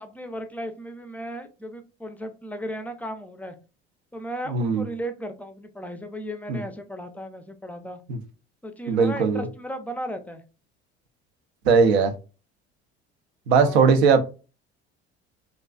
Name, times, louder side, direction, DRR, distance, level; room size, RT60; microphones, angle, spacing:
voice 1, 0.0-3.5 4.1-8.0 8.6-10.4 13.6-14.0, equal, 5° left, 0.4 m, -35 dB
voice 2, 4.5-4.8 6.5-6.6 8.1-8.2 8.9-9.4 11.7-12.1 13.5-14.2, right 5 dB, 85° right, 0.5 m, -19 dB
2.4 x 2.3 x 2.2 m
hypercardioid pair, 65°, 31 cm